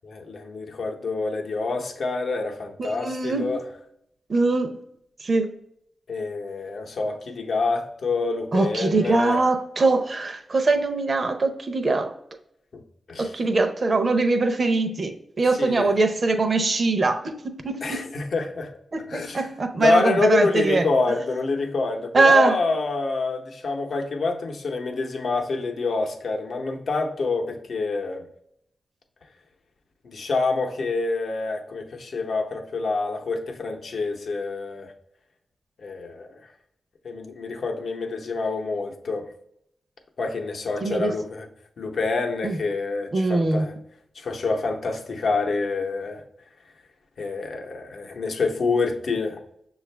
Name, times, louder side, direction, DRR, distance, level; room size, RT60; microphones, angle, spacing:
voice 1, 0.0-3.6 6.1-9.4 12.7-12.8 13.1-13.3 15.6-15.9 17.8-18.7 19.1-19.5 19.8-28.2 30.0-34.9 35.8-36.5 37.0-39.3 40.2-41.5 41.8-43.7 44.1-46.2 47.2-49.4, left 3 dB, 70° left, 0.7 m, -27 dB
voice 2, 2.8-3.5 4.3-4.7 5.2-5.5 8.5-12.1 13.2-18.1 18.9-20.9 22.1-22.6 40.8-41.1 42.4-42.6 43.1-43.7, right 3 dB, 45° right, 0.6 m, -22 dB
6.4 x 2.4 x 3.2 m
wide cardioid pair, 90°, 0 cm